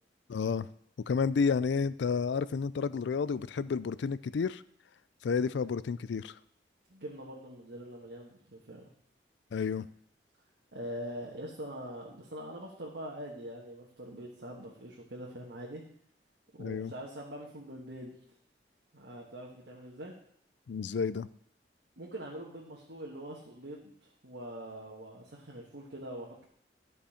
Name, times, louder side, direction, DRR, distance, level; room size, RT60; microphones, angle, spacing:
voice 1, 0.3-0.7 1.1-4.6 5.2-6.4 9.5-9.9 16.6-16.9 20.7-21.3, left 5 dB, 75° left, 17 dB, 0.4 m, -30 dB
voice 2, 6.9-8.8 10.7-15.8 16.5-18.1 18.9-20.1 22.0-26.4, equal, 70° right, -3 dB, 1.6 m, -43 dB
13.0 x 5.5 x 5.0 m, 0.65 s
head